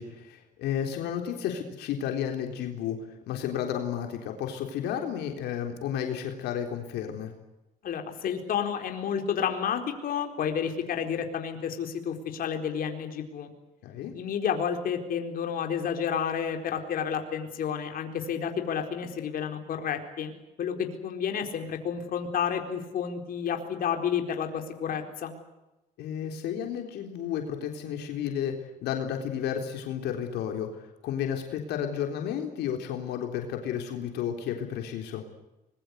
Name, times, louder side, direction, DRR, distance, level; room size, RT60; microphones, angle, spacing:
voice 1, 0.0-3.0 3.3-7.3 13.8-14.1 26.0-35.2, left 9 dB, 80° left, 4 dB, 3.8 m, -32 dB
voice 2, 7.8-13.5 14.1-20.3 20.6-25.3, left 7 dB, 60° left, 5 dB, 4.2 m, -30 dB
25.0 x 22.0 x 8.2 m, 0.98 s
cardioid pair, 110°, 17 cm